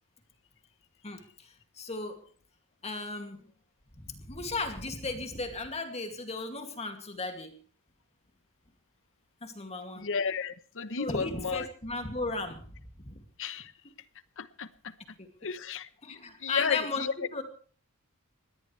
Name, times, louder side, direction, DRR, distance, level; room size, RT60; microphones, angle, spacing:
voice 1, 1.0-2.2 2.8-3.4 4.0-7.5 9.4-10.1 11.0-12.7 13.1-13.2 13.8-13.9 15.2-15.3 16.0-17.4, left 3 dB, 30° left, 5 dB, 2.5 m, -36 dB
voice 2, 10.0-11.7 13.4-13.7 14.4-14.7 15.4-17.1, left 6 dB, 60° left, 14 dB, 1.0 m, -33 dB
21.0 x 17.5 x 3.3 m, 0.42 s
head